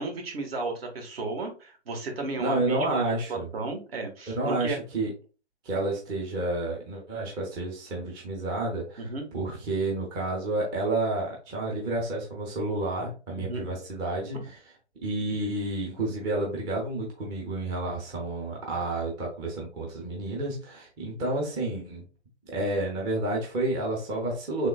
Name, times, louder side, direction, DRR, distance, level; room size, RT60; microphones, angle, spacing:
voice 1, 0.0-3.0 3.3-4.8 9.0-9.2 13.4-13.6, right 3 dB, 60° right, 3 dB, 1.4 m, -33 dB
voice 2, 2.4-3.5 4.3-5.1 5.6-14.6 15.0-22.0 22.5-24.7, right 2 dB, 15° right, -2 dB, 0.5 m, -30 dB
3.6 x 3.3 x 2.2 m, 0.34 s
hypercardioid pair, 135°, 34 cm